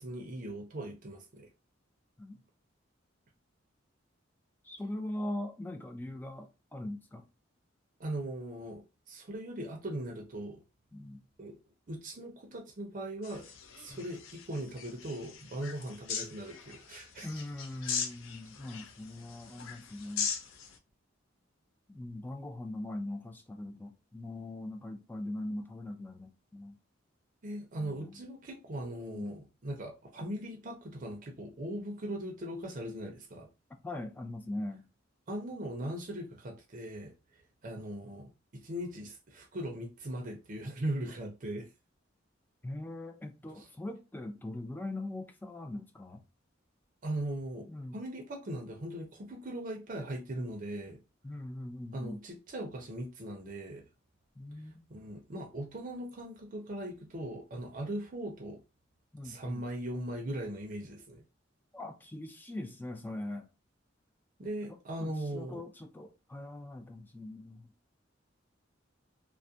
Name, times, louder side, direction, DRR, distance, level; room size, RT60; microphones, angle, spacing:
voice 1, 0.0-1.5 8.0-8.8 9.1-10.6 11.4-11.6 11.9-17.3 27.4-33.5 35.3-37.1 37.6-41.7 43.6-43.7 47.0-51.0 51.9-53.8 54.9-58.6 59.2-61.2 64.4-65.6, right 1 dB, 40° right, 0.5 m, -39 dB
voice 2, 4.6-7.2 10.9-11.2 13.9-14.0 17.2-20.3 21.9-26.8 27.8-28.2 29.1-29.3 33.8-34.9 42.6-46.2 47.7-48.0 51.2-52.2 54.4-54.8 59.1-59.6 61.7-63.5 64.7-67.7, left 1 dB, 10° left, 0.3 m, -41 dB
sound 1, 13.2-20.8, left 6 dB, 85° left, 0.4 m, -40 dB
2.3 x 2.1 x 2.6 m
head